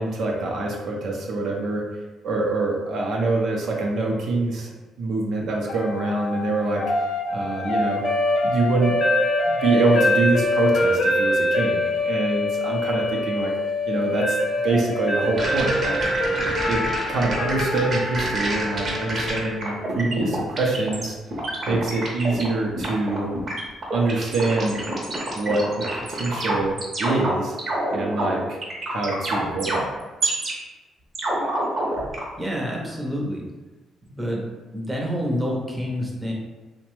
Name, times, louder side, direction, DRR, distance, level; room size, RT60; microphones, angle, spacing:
voice 1, 0.0-1.8 2.2-4.7 5.0-6.8 7.3-8.0 8.4-9.0 9.5-13.5 13.9-14.4 14.6-16.0 16.6-16.8 17.1-21.2 21.7-23.3 23.9-24.8 25.3-27.5 27.9-28.6 28.9-29.9, right 3 dB, 65° right, -1 dB, 0.5 m, -25 dB
sound 1, 5.7-19.8, left 1 dB, 60° left, 0.5 m, -24 dB
sound 2, 15.4-21.1 21.3-22.5 22.8-30.5 31.1-32.2, right 1 dB, 45° right, 0.8 m, -27 dB
voice 2, 32.4-33.4 34.1-34.4 34.7-36.3, equal, 10° right, -2 dB, 0.6 m, -27 dB
2.9 x 2.1 x 3.0 m, 1.2 s
cardioid pair, 90°, 0 cm